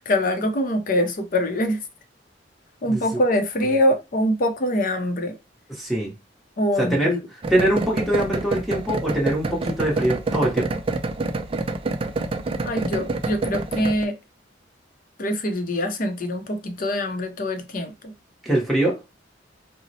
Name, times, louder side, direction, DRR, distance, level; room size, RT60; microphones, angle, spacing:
voice 1, 0.1-1.8 2.8-5.4 6.6-7.2 12.7-14.1 15.2-17.9, left 1 dB, 50° left, 6 dB, 0.6 m, -23 dB
voice 2, 2.9-3.2 5.7-6.1 6.8-7.1 7.5-10.7 18.4-19.0, right 1 dB, ahead, -4 dB, 0.8 m, -23 dB
sound 1, 7.4-14.1, right 3 dB, 30° right, 0.3 m, -27 dB
4.0 x 2.0 x 2.7 m, 0.26 s
head